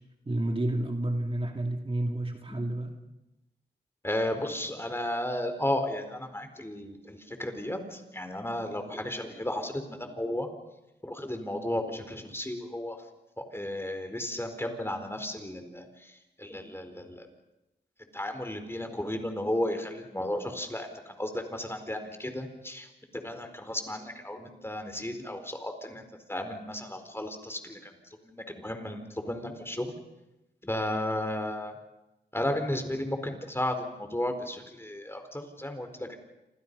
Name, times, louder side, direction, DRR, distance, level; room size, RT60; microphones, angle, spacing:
voice 1, 0.2-2.9, right 1 dB, 30° right, 3 dB, 2.7 m, -30 dB
voice 2, 4.0-10.5 11.0-13.0 13.5-17.3 18.1-22.9 23.1-27.9 28.2-29.9 30.6-31.8 32.3-36.2, left 1 dB, 10° left, 6 dB, 4.6 m, -34 dB
28.5 x 26.0 x 5.6 m, 0.95 s
cardioid pair, 65°, 19 cm